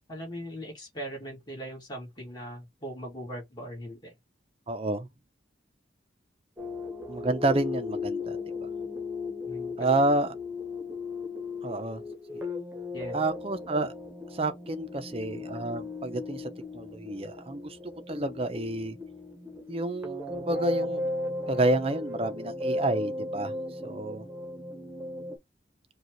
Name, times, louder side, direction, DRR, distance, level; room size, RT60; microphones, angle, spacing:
voice 1, 0.1-4.1 9.5-9.8 12.9-13.2, equal, 25° left, 2.2 m, -40 dB
voice 2, 4.7-5.1 7.1-8.4 9.8-10.3 11.6-12.0 13.1-13.9 14.3-19.0 19.7-21.0 21.5-23.5 23.8-24.3, right 2 dB, 35° right, 0.6 m, -29 dB
sound 1, 6.6-25.4, left 2 dB, 10° right, 1.1 m, -36 dB
5.0 x 2.4 x 3.1 m
head